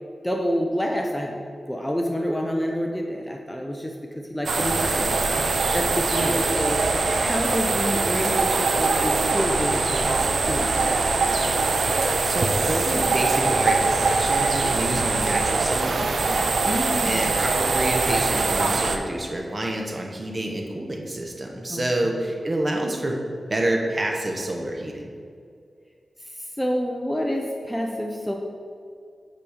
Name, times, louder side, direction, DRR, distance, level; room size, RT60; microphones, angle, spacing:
voice 1, 0.2-6.8 7.2-11.0 16.6-17.3 21.7-21.8 26.6-28.3, equal, 5° left, 1 dB, 0.6 m, -28 dB
sound 1, 4.5-19.0, right 3 dB, 70° right, 0.6 m, -22 dB
voice 2, 12.2-16.5 17.0-23.2 23.5-25.1, right 1 dB, 30° right, 1 dB, 0.9 m, -28 dB
5.8 x 5.1 x 6.3 m, 2.3 s
wide cardioid pair, 130°, 0 cm